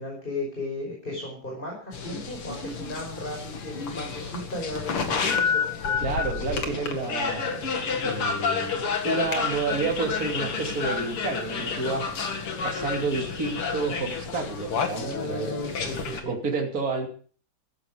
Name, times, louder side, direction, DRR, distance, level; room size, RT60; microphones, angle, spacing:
voice 1, 0.0-6.1 14.9-16.4, left 2 dB, 20° left, -1 dB, 5.7 m, -35 dB
sound 1, 1.9-16.2, left 5 dB, 80° left, 3.0 m, -30 dB
voice 2, 6.0-7.6 8.0-12.1 12.6-15.7 16.1-17.1, right 3 dB, 40° right, 1 dB, 3.3 m, -30 dB
15.0 x 14.5 x 5.2 m, 0.43 s
omnidirectional pair, 2.4 m